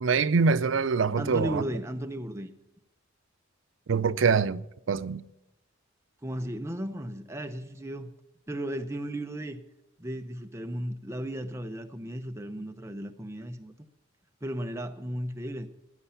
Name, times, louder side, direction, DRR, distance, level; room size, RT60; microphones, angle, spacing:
voice 1, 0.0-1.6 3.9-5.2, right 5 dB, 85° right, 0.5 m, -24 dB
voice 2, 1.2-2.5 6.2-8.1 8.5-9.6 10.0-13.7 14.4-15.7, right 1 dB, 15° right, 0.7 m, -35 dB
15.5 x 10.0 x 5.7 m
head